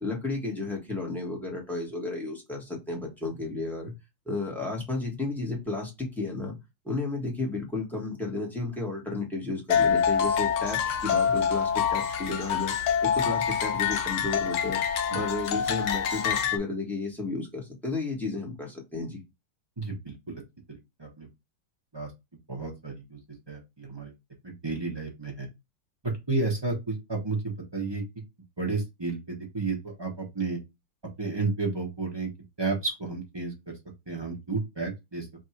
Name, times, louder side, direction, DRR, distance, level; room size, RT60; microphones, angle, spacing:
voice 1, 0.0-3.9 4.3-6.6 6.8-12.7 13.0-14.8 15.1-19.2, left 3 dB, ahead, -1 dB, 1.0 m, -33 dB
sound 1, 9.7-16.6, left 7 dB, 90° left, 0.6 m, -26 dB
voice 2, 19.8-20.4 20.7-21.3 21.9-22.1 22.5-23.2 23.5-24.1 24.4-25.5 26.0-28.0 28.6-30.6 31.2-32.3 32.6-33.7 34.1-35.3, right 3 dB, 30° right, -1 dB, 0.5 m, -32 dB
3.5 x 2.5 x 4.3 m, 0.22 s
omnidirectional pair, 2.0 m